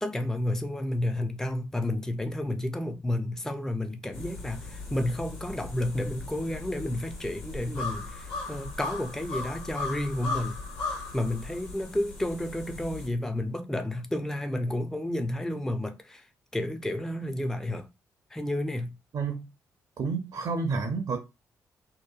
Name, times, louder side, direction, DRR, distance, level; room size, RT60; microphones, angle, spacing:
voice 1, 0.0-10.6 11.1-16.3 16.5-17.9 18.3-19.0, left 1 dB, 5° left, 0.5 m, -31 dB
sound 1, 4.1-13.1, left 3 dB, 85° left, 1.2 m, -38 dB
voice 2, 20.0-21.2, right 4 dB, 55° right, 0.6 m, -29 dB
2.8 x 2.2 x 2.3 m
hypercardioid pair, 40°, 8 cm